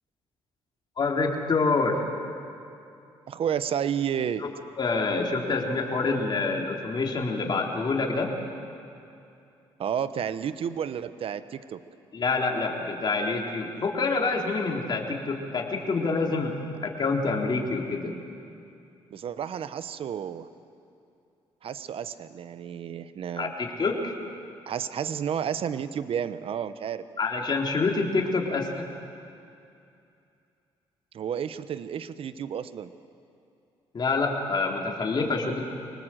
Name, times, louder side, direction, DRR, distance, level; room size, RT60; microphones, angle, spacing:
voice 1, 1.0-2.0 4.8-8.3 12.1-16.5 16.8-18.1 23.4-24.1 27.2-28.9 33.9-35.6, left 3 dB, 45° left, 0 dB, 3.8 m, -27 dB
voice 2, 3.3-4.4 9.8-11.8 19.1-20.5 21.6-23.5 24.7-27.0 31.1-32.9, right 8 dB, 60° right, 13 dB, 1.0 m, -31 dB
25.0 x 19.5 x 7.8 m, 2.6 s
cardioid pair, 75°, 11 cm